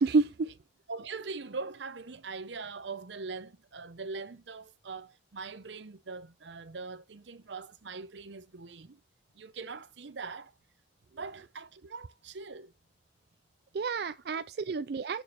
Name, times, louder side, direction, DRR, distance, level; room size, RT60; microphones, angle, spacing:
voice 1, 0.0-0.5 13.7-15.2, right 4 dB, 60° right, 0.4 m, -29 dB
voice 2, 0.9-9.0 9.3-10.5 11.1-12.7 14.3-14.4, right 4 dB, 75° right, 0.8 m, -42 dB
7.0 x 6.9 x 4.7 m
head